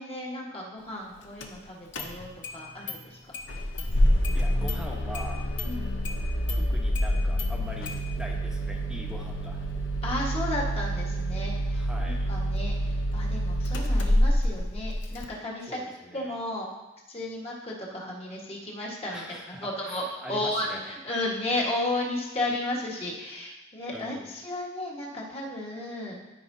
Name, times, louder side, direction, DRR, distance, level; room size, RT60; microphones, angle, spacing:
voice 1, 0.0-3.2 5.6-5.8 10.0-12.7 13.1-15.8 16.1-16.7 17.1-26.2, left 1 dB, 30° left, -4 dB, 1.5 m, -33 dB
Engine starting, 1.4-1.5 1.9-2.6 2.9-3.0 3.3-15.3, equal, 65° left, 0.8 m, -27 dB
voice 2, 4.3-5.4 6.5-7.9 8.2-9.7 11.7-12.3 15.7-16.4 19.1-21.0 23.4-23.5 23.9-24.3, equal, 5° right, -1 dB, 1.0 m, -42 dB
Fire, 7.1-9.6, left 4 dB, 45° left, 0.4 m, -44 dB
13.0 x 5.0 x 2.8 m, 1.0 s
head